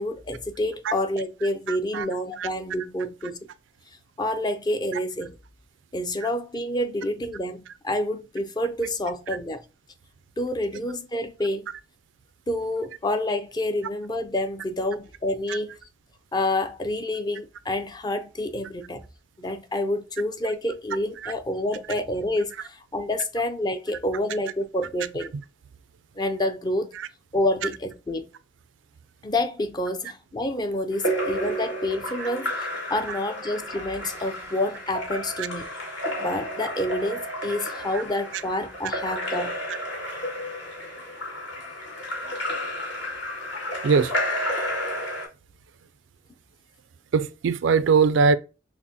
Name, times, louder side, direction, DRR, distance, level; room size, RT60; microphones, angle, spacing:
voice 1, 0.0-3.5 4.2-5.3 5.9-9.6 10.4-11.7 12.5-15.8 16.3-19.0 19.4-25.3 26.2-26.9 27.3-28.3 29.2-35.6 36.2-39.5, left 1 dB, 20° left, 0.4 m, -28 dB
voice 2, 1.7-2.1 2.4-2.5 6.2-6.3 15.5-15.6 21.2-21.3 26.9-27.1 32.2-32.3 33.1-33.2 35.4-35.5 37.9-38.0 39.7-39.8 43.8-44.1 47.1-48.4, right 5 dB, 75° right, 0.3 m, -22 dB
Splash splatter / Drip / Trickle dribble, 30.9-45.3, equal, 70° left, 1.8 m, -31 dB
6.0 x 2.1 x 2.7 m
head